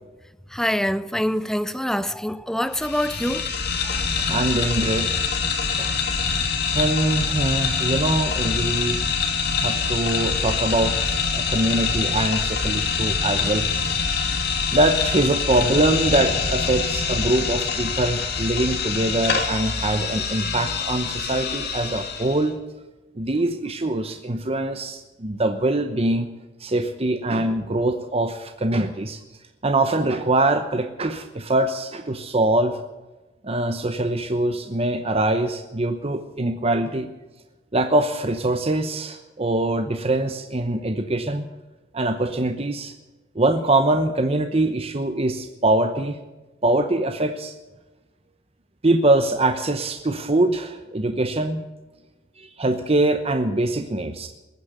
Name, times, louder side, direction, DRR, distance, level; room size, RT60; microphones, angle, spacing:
voice 1, 0.5-3.5, equal, 5° left, 0.6 m, -25 dB
sound 1, 2.7-22.4, left 5 dB, 65° left, 2.8 m, -25 dB
voice 2, 3.9-5.2 5.8-5.9 6.7-9.0 9.6-13.9 14.7-22.6 23.2-26.3 26.6-29.2 29.6-32.8 33.4-37.1 37.7-41.5 41.9-42.9 43.3-46.2 46.6-47.5 48.8-51.6 52.4-54.3, right 2 dB, 35° right, 0.9 m, -23 dB
21.0 x 9.4 x 6.8 m
head